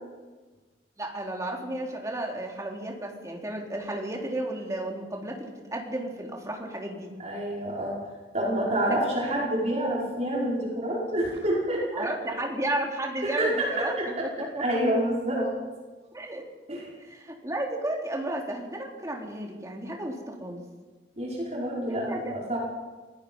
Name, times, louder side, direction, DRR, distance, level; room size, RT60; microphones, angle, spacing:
voice 1, 1.0-7.1 8.9-9.2 11.9-13.9 14.2-14.6 16.1-16.5 17.0-20.6 21.9-22.3, right 1 dB, 20° right, 0 dB, 3.5 m, -33 dB
voice 2, 7.2-8.0 8.3-12.1 13.2-15.5 16.7-16.9 21.2-22.6, right 1 dB, 40° right, -4 dB, 5.2 m, -28 dB
27.0 x 18.5 x 5.5 m, 1.3 s
head